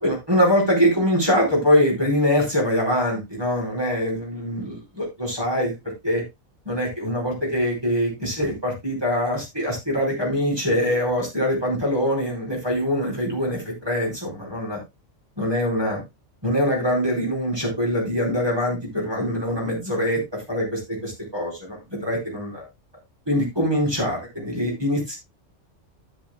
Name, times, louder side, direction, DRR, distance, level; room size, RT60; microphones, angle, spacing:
voice 1, 0.0-5.7 6.0-6.2 6.6-14.8 15.4-16.0 16.4-20.2 20.5-22.6 23.3-25.2, equal, 20° right, -3 dB, 4.7 m, -23 dB
12.5 x 9.4 x 2.2 m, 0.21 s
omnidirectional pair, 1.2 m